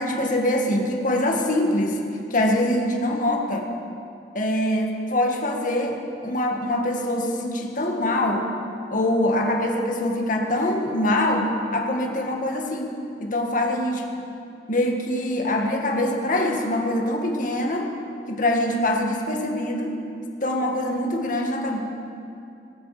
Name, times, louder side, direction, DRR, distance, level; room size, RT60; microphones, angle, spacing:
voice 1, 0.0-2.0 2.3-3.7 4.3-8.5 8.9-14.1 14.7-17.9 18.3-20.0 20.4-21.8, left 1 dB, 50° left, 1 dB, 1.9 m, -24 dB
20.5 x 12.5 x 5.0 m, 2.6 s
head